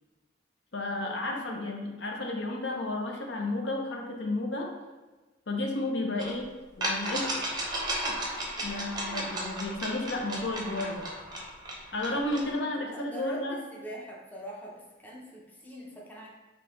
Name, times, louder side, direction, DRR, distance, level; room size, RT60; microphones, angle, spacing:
voice 1, 0.7-4.7 5.5-6.5 6.8-7.3 8.2-11.1 11.9-13.6, left 2 dB, 65° left, 1 dB, 0.6 m, -32 dB
sound 1, 6.2-6.3 6.8-12.5, right 1 dB, 20° right, 0.7 m, -34 dB
voice 2, 12.5-16.3, right 1 dB, 10° left, -4 dB, 0.6 m, -44 dB
3.8 x 2.8 x 3.8 m, 1.2 s
head